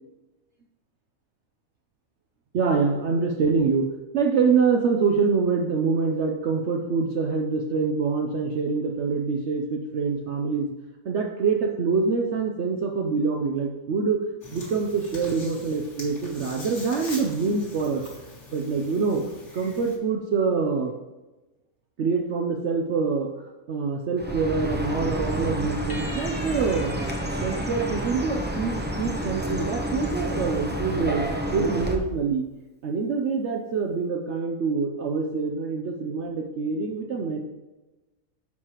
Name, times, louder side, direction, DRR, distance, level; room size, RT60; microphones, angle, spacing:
voice 1, 2.5-3.9 4.1-10.7 11.0-14.2 14.5-18.0 18.5-19.2 19.5-20.9 22.0-23.3 23.7-27.0 27.4-32.4 32.8-37.4, right 5 dB, 60° right, 2 dB, 0.9 m, -25 dB
sound 1, 14.4-20.0, left 2 dB, 55° left, 2.1 m, -43 dB
Chirp tweet, 24.2-32.0, right 1 dB, 10° right, 0.6 m, -29 dB
sound 2, 25.9-29.4, left 1 dB, 35° left, 0.8 m, -44 dB
9.8 x 6.5 x 3.0 m, 1.1 s
omnidirectional pair, 1.5 m